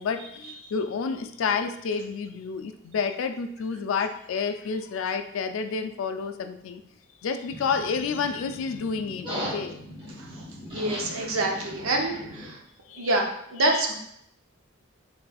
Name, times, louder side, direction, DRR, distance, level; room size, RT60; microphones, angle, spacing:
voice 1, 0.0-6.8 7.2-9.8 12.9-13.1 13.6-13.8, left 5 dB, 75° left, 7 dB, 0.3 m, -30 dB
sound 1, 7.5-12.5, equal, 25° right, 1.3 m, -38 dB
voice 2, 10.7-12.6 13.0-13.9, right 2 dB, 85° right, 1 dB, 0.7 m, -26 dB
4.1 x 3.2 x 2.3 m, 0.72 s
head